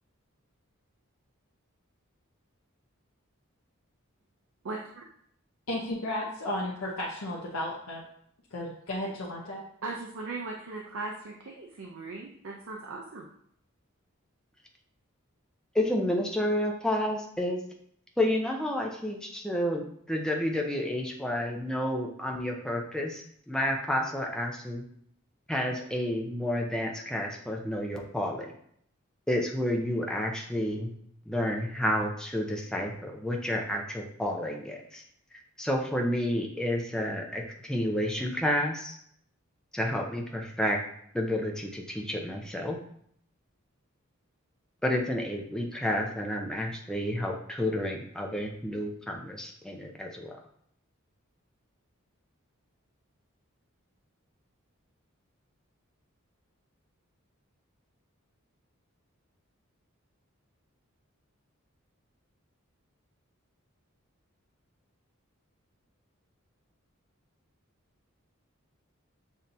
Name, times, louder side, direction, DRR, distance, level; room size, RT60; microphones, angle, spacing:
voice 1, 4.6-5.0 9.8-13.3, right 3 dB, 65° right, 0 dB, 0.5 m, -38 dB
voice 2, 5.7-8.0 8.5-9.6, left 1 dB, 85° left, -4 dB, 0.8 m, -34 dB
voice 3, 15.7-17.6 18.2-24.9 25.5-28.5 29.3-30.9 31.3-35.0 35.6-39.0 39.7-40.8 41.1-42.8 44.8-50.4, left 1 dB, 5° left, 1 dB, 0.5 m, -30 dB
7.2 x 2.7 x 2.6 m, 0.68 s
head